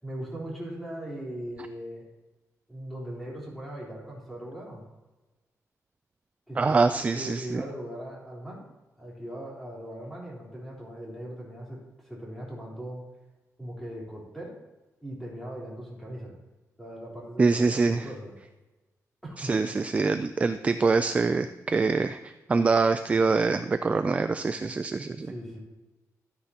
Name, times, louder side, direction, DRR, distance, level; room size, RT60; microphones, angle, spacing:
voice 1, 0.0-2.1 2.7-4.8 6.5-8.7 9.0-13.0 13.6-14.6 15.0-16.3 16.8-18.3 19.2-19.5 25.2-25.6, right 1 dB, ahead, -6 dB, 3.6 m, -39 dB
voice 2, 6.6-7.6 17.4-18.0 19.4-25.3, right 4 dB, 25° right, 9 dB, 0.3 m, -24 dB
13.0 x 9.5 x 2.9 m, 1.1 s
wide cardioid pair, 160°, 6 cm